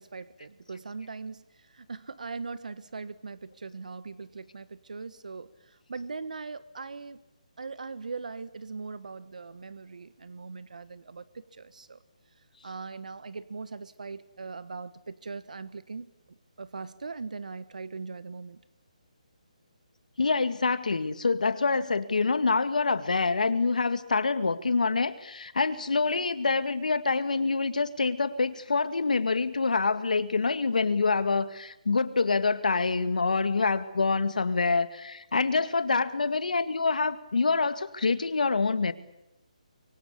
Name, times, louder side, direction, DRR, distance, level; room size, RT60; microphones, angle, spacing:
voice 1, 0.0-7.2 7.6-12.0 12.6-18.6, right 4 dB, 75° right, 16 dB, 1.4 m, -40 dB
voice 2, 20.2-38.9, left 4 dB, 80° left, 12 dB, 2.0 m, -26 dB
24.5 x 23.5 x 8.5 m, 0.85 s
hypercardioid pair, 160°, 4 cm